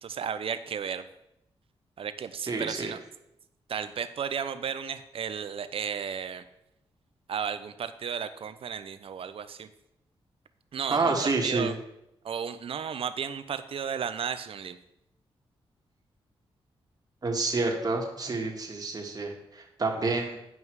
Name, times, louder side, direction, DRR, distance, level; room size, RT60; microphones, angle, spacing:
voice 1, 0.0-1.0 2.0-3.0 3.7-6.4 7.3-9.7 10.7-11.7 12.2-14.8, right 7 dB, 65° right, 11 dB, 0.7 m, -34 dB
voice 2, 2.5-2.9 10.9-11.7 17.2-20.4, right 3 dB, 40° right, 0 dB, 1.9 m, -28 dB
9.6 x 5.4 x 4.8 m, 0.81 s
cardioid pair, 80°, 10 cm